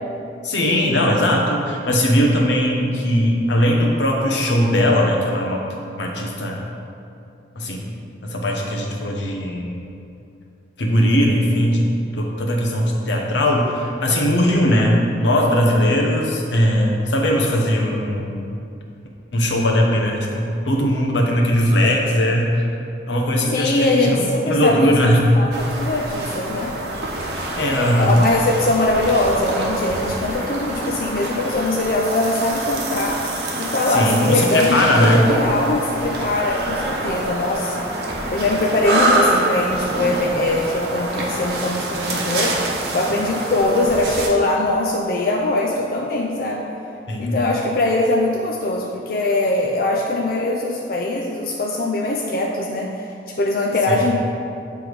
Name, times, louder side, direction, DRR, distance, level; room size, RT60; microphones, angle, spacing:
voice 1, 0.4-5.6 6.0-6.6 7.6-7.9 8.2-9.8 10.8-18.5 19.3-22.8 23.1-25.2 27.6-28.2 33.9-35.2 47.1-47.4 53.9-54.0, equal, 85° left, -1 dB, 0.9 m, -19 dB
voice 2, 23.5-24.8 25.3-26.7 27.9-33.2 33.6-37.9 38.3-42.6 42.9-46.7 47.2-54.2, left 2 dB, 50° left, -1 dB, 0.4 m, -21 dB
sound 1, 25.5-44.3, right 1 dB, 65° right, 0.9 m, -26 dB
7.9 x 3.5 x 4.7 m, 2.6 s
head